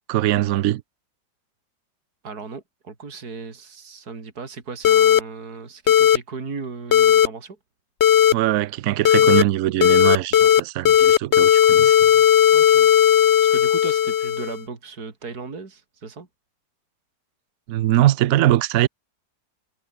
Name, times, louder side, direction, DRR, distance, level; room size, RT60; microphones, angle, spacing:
voice 1, 0.1-0.8 8.3-12.1 17.7-18.9, right 14 dB, 70° right, 0.8 m, -21 dB
voice 2, 2.2-7.6 12.5-12.9 13.2-16.3, right 4 dB, 55° right, 3.7 m, -36 dB
sound 1, 4.8-5.2 5.9-6.2 6.9-7.3 8.0-8.3 9.0-9.4 9.8-10.6 10.8-14.6, left 10 dB, 65° left, 0.7 m, -15 dB
omnidirectional pair, 2.0 m